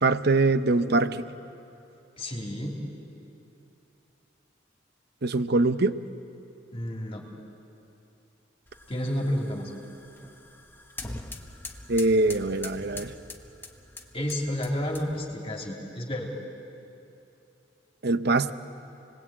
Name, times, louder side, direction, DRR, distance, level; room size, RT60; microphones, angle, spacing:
voice 1, 0.0-1.2 5.2-6.0 11.9-13.1 18.0-18.5, right 3 dB, 60° right, 11 dB, 0.9 m, -23 dB
voice 2, 2.2-2.8 6.7-7.2 8.9-9.7 14.1-16.3, equal, 30° left, 0 dB, 3.0 m, -30 dB
sound 1, 8.7-15.4, left 2 dB, 10° left, 1.5 m, -43 dB
29.5 x 20.5 x 8.8 m, 2.8 s
head